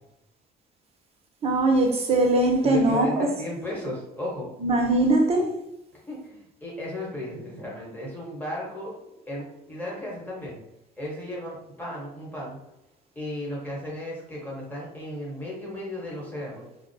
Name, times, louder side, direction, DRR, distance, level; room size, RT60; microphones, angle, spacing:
voice 1, 1.4-3.3 4.6-5.5, right 2 dB, 35° right, 2 dB, 0.6 m, -21 dB
voice 2, 2.6-4.5 6.1-9.0 9.2-10.6 11.0-12.6 13.1-16.6, left 1 dB, 10° left, -4 dB, 1.0 m, -35 dB
2.5 x 2.0 x 2.6 m, 0.85 s
cardioid pair, 110°, 17 cm